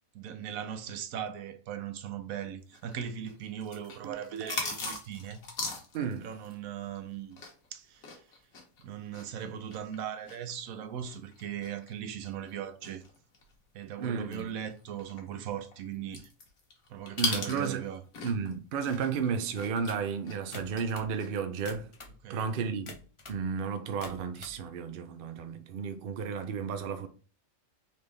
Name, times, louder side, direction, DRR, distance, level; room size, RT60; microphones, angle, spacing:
voice 1, 0.1-5.4 6.2-7.4 7.7-8.2 8.8-13.0 13.7-16.3 16.9-18.0 22.2-22.5, right 9 dB, 75° right, 1.0 m, -39 dB
sound 1, 2.7-7.7 8.0-13.5 13.9-14.0 14.3-18.5 18.8-20.8 21.1-21.4, left 4 dB, 75° left, 1.6 m, -39 dB
voice 2, 5.9-6.3 14.0-14.5 17.2-17.8 18.2-21.9 22.3-22.9 23.3-27.1, right 6 dB, 55° right, 0.6 m, -33 dB
sound 2, 20.5-21.1 21.6-22.2 22.9-23.4 23.8-24.6, left 2 dB, 30° left, 0.6 m, -46 dB
4.1 x 3.4 x 3.3 m
omnidirectional pair, 1.5 m